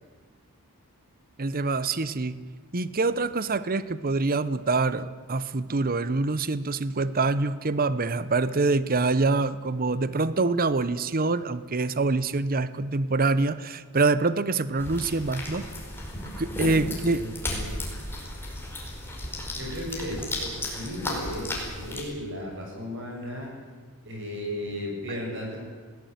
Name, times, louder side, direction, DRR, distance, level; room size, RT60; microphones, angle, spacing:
voice 1, 1.4-2.4 2.7-15.6 16.4-17.2, right 3 dB, 40° right, 15 dB, 0.8 m, -25 dB
sound 1, 14.8-22.0, left 1 dB, 10° left, 5.1 m, -34 dB
voice 2, 17.0-17.7 19.5-23.6 24.0-25.6, equal, 60° right, 0 dB, 7.6 m, -35 dB
20.5 x 17.5 x 9.4 m, 1.5 s
head